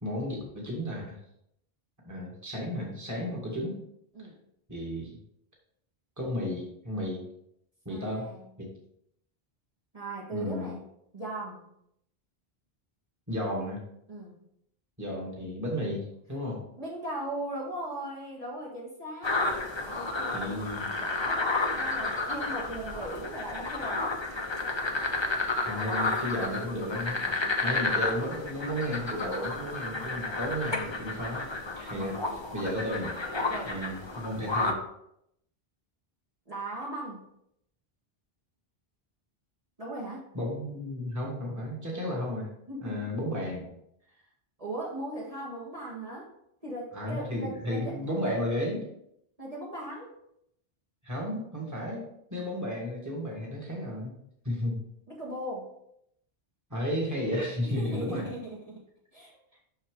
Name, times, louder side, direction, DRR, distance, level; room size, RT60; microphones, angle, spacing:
voice 1, 0.0-1.2 2.0-3.8 4.7-5.2 6.2-7.2 7.9-8.3 8.6-8.7 10.3-10.8 13.3-13.8 15.0-16.6 20.2-20.9 25.6-31.5 31.8-33.2 33.6-34.8 40.3-42.5 42.8-43.7 46.9-48.9 51.0-54.1 54.4-54.8 56.7-58.3, left 1 dB, 15° right, -3 dB, 1.8 m, -33 dB
voice 2, 7.9-8.5 9.9-10.8 11.1-11.7 14.1-14.4 16.8-19.4 19.9-20.6 21.0-21.5 21.7-24.3 27.4-27.9 31.9-32.2 33.4-33.8 36.5-37.3 39.8-40.3 42.7-43.0 44.6-46.3 46.6-47.9 49.4-50.1 55.1-55.7 57.6-58.8 59.1-59.4, right 1 dB, 35° right, -6 dB, 1.8 m, -38 dB
sound 1, 19.2-34.7, left 3 dB, 30° left, 0.8 m, -31 dB
6.5 x 6.3 x 3.8 m, 0.75 s
omnidirectional pair, 1.1 m